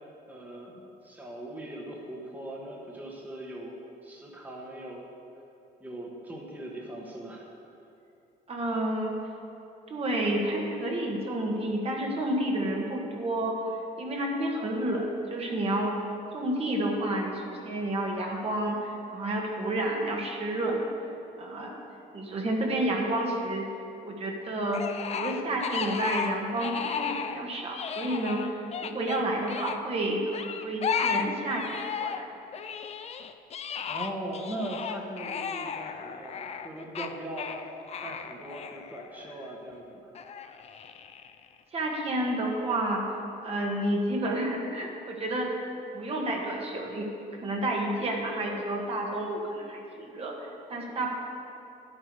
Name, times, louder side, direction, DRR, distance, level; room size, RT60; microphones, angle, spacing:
voice 1, 0.3-5.0 5.8-7.5 33.8-37.8 38.0-40.2, right 1 dB, 10° right, -2 dB, 1.4 m, -40 dB
voice 2, 8.5-9.1 9.9-13.6 14.0-15.9 16.3-20.9 21.4-21.8 22.1-23.7 24.0-24.8 25.1-32.2 41.7-43.1 43.4-45.5 45.9-47.1 47.4-51.1, right 1 dB, 35° right, -1 dB, 1.5 m, -30 dB
sound 1, 24.7-27.4 27.7-29.8 30.3-32.3 32.5-39.5 40.1-41.5, left 7 dB, 40° left, 0.5 m, -34 dB
10.0 x 8.2 x 4.7 m, 2.8 s
cardioid pair, 110°, 17 cm